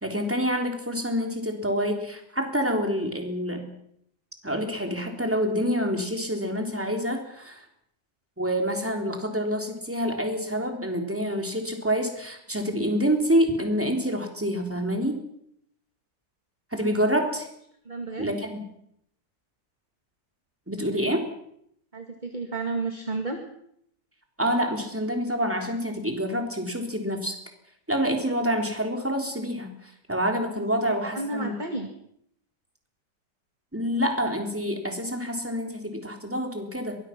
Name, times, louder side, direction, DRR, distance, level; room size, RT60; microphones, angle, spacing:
voice 1, 0.0-3.7 4.4-7.6 8.4-15.2 16.7-17.5 18.2-18.6 20.7-21.3 24.4-27.4 27.9-31.5 33.7-37.0, equal, 5° right, 3 dB, 3.4 m, -27 dB
voice 2, 17.9-18.3 21.9-23.4 30.9-31.9, right 3 dB, 25° right, 4 dB, 2.1 m, -32 dB
23.0 x 20.5 x 6.0 m, 0.72 s
omnidirectional pair, 1.9 m